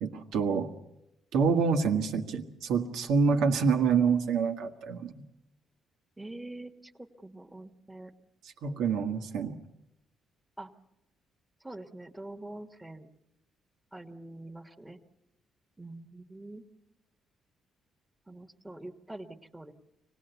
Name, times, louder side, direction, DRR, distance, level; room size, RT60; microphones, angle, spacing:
voice 1, 0.0-0.7 1.3-5.2 8.6-9.6, right 5 dB, 85° right, 5 dB, 1.6 m, -27 dB
voice 2, 6.2-8.1 10.6-10.7 11.6-13.1 13.9-15.0 15.8-16.6 18.3-19.7, right 2 dB, 10° right, 2 dB, 1.4 m, -45 dB
25.5 x 18.5 x 8.1 m, 0.90 s
cardioid pair, 90°, 0 cm